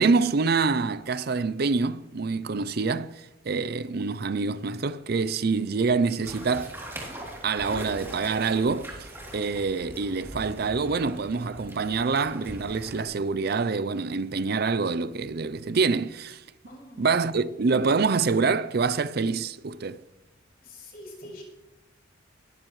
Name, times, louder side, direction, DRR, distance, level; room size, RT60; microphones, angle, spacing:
voice 1, 0.0-6.8 7.4-16.4 17.0-20.0, right 4 dB, 50° right, 0.5 m, -26 dB
sound 1, 6.2-13.0, right 1 dB, 10° right, 3.0 m, -41 dB
voice 2, 16.6-17.1 20.6-21.4, left 1 dB, 50° left, 5.6 m, -44 dB
20.5 x 14.0 x 3.2 m
head